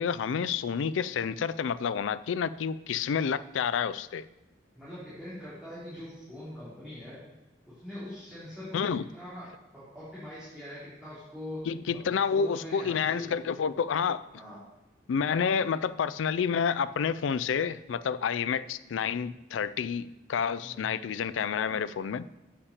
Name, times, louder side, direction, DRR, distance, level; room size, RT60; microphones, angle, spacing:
voice 1, 0.0-4.2 8.7-9.0 11.7-14.3 15.1-22.3, left 6 dB, 85° left, 15 dB, 0.4 m, -29 dB
voice 2, 4.7-7.2 7.8-11.6 12.0-13.3 14.3-14.6 18.3-18.5 20.6-20.9, left 1 dB, 5° right, -13 dB, 3.2 m, -43 dB
8.4 x 5.8 x 6.5 m, 1.0 s
head